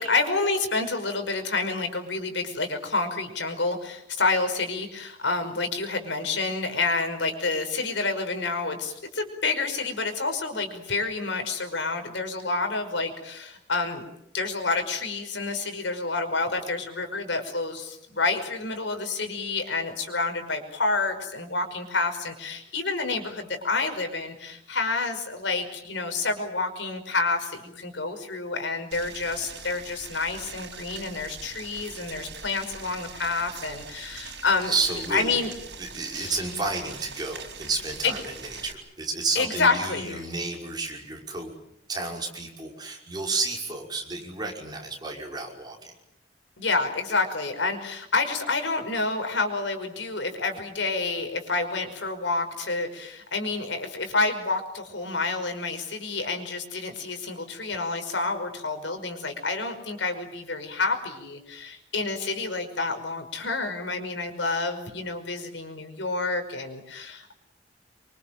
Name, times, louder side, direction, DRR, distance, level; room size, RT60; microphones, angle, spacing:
voice 1, 0.0-14.0 14.3-34.7 35.1-35.5 36.1-36.4 38.0-38.1 39.4-40.2 46.6-67.3, left 3 dB, 90° left, 6 dB, 5.4 m, -28 dB
Boiling, 28.9-38.7, right 5 dB, 65° right, 4.9 m, -42 dB
voice 2, 34.6-35.4 35.8-41.5 41.9-45.9, right 3 dB, 20° right, 0 dB, 5.7 m, -31 dB
28.0 x 24.5 x 7.7 m, 0.77 s
head